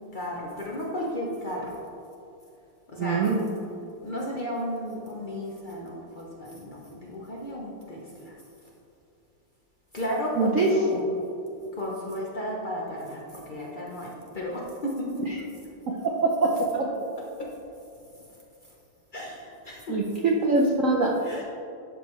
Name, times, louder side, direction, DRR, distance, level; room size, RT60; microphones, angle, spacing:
voice 1, 0.0-1.8 2.9-3.3 4.0-8.3 9.9-11.1 11.7-15.2 15.9-16.0 16.4-16.8 17.2-17.5 18.1-18.3 19.1-20.5 21.2-21.4, equal, 60° left, -3 dB, 0.5 m, -34 dB
voice 2, 3.0-3.4 10.4-10.7 16.2-16.9 19.9-21.2, right 3 dB, 75° right, -1 dB, 0.7 m, -23 dB
11.0 x 5.3 x 3.1 m, 2.7 s
omnidirectional pair, 2.2 m